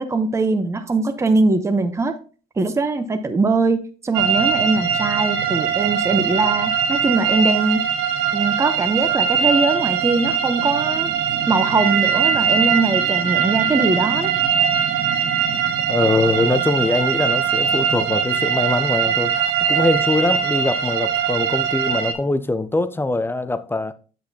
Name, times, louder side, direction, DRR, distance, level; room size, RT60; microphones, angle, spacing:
voice 1, 0.0-2.2 2.6-7.8 8.3-11.1 11.5-14.3, right 3 dB, 15° right, 0.7 m, -21 dB
sound 1, 4.1-22.1, right 8 dB, 90° right, 1.0 m, -21 dB
voice 2, 15.9-23.9, left 2 dB, 15° left, 0.5 m, -22 dB
7.9 x 6.3 x 2.8 m
cardioid pair, 110°, 17 cm